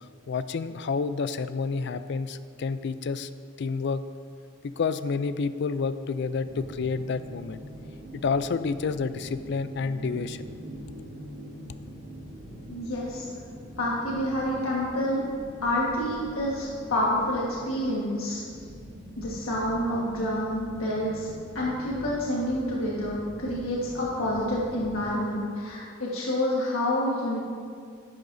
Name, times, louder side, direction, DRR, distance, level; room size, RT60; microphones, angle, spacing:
voice 1, 0.3-3.3 3.6-4.0 4.6-7.6 8.1-10.5, left 4 dB, 55° left, 12 dB, 0.4 m, -29 dB
sound 1, 6.4-25.1, equal, 35° right, 1.5 m, -43 dB
voice 2, 12.7-13.3 13.8-15.2 15.6-18.4 19.2-21.3 21.5-27.4, left 1 dB, 80° left, -5 dB, 1.5 m, -28 dB
11.0 x 10.5 x 2.7 m, 2.1 s
head